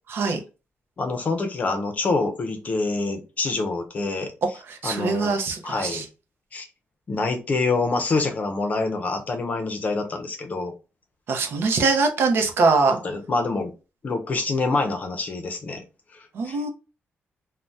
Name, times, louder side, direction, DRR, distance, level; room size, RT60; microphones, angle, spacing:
voice 1, 0.1-0.4 4.7-6.0 11.3-13.0 16.3-16.7, right 4 dB, 60° right, 4 dB, 0.7 m, -22 dB
voice 2, 1.0-4.3 4.8-5.4 5.6-6.1 6.5-6.7 7.1-10.7 13.0-13.7 14.0-15.8 16.1-16.6, left 3 dB, 35° left, 5 dB, 0.6 m, -26 dB
2.6 x 2.1 x 3.3 m, 0.31 s
wide cardioid pair, 165°, 4 cm